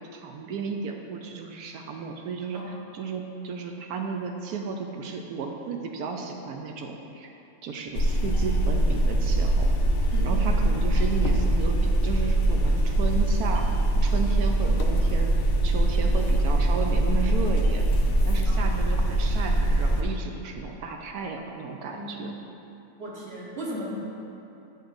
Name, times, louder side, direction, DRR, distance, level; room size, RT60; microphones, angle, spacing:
voice 1, 0.1-7.3 7.6-9.7 10.2-13.7 14.0-15.3 15.6-17.9 18.2-22.3, right 5 dB, 70° right, 3 dB, 1.0 m, -33 dB
sound 1, 8.0-20.0, right 1 dB, 65° left, 0.9 m, -23 dB
voice 2, 10.1-10.6 18.5-18.6 21.9-22.2 23.0-23.9, equal, 40° right, -5 dB, 1.3 m, -36 dB
8.0 x 7.9 x 2.5 m, 2.8 s
omnidirectional pair, 1.8 m